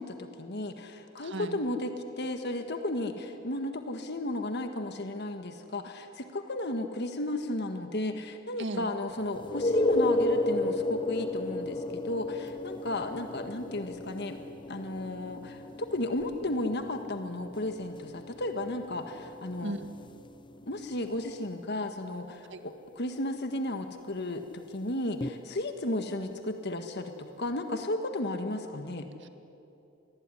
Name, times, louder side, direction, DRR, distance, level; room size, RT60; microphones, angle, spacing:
voice 1, 0.0-1.9 2.2-14.4 14.7-19.7 20.7-29.1, left 1 dB, 55° left, 6 dB, 1.6 m, -34 dB
voice 2, 1.2-1.6 8.6-8.9 19.6-19.9 22.5-22.6 29.2-29.3, right 1 dB, 60° right, 8 dB, 1.9 m, -36 dB
sound 1, 9.4-20.9 25.2-25.3, left 1 dB, 25° left, 0.6 m, -33 dB
27.5 x 21.5 x 9.9 m, 2.8 s
head